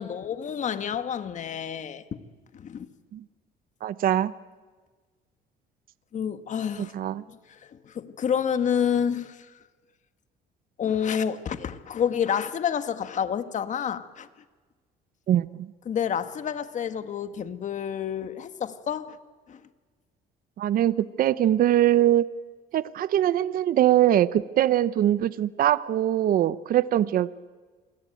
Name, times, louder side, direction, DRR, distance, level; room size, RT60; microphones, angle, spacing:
voice 1, 0.0-2.2 2.5-2.9 6.1-6.9 7.3-9.6 10.8-14.3 15.8-19.2 19.5-19.6, left 8 dB, 45° left, 1.7 m, -29 dB
voice 2, 3.8-4.3 6.8-7.2 15.3-15.7 20.6-22.2 22.7-27.3, right 12 dB, 60° right, 0.8 m, -22 dB
27.0 x 21.5 x 9.2 m
cardioid pair, 110°, 17 cm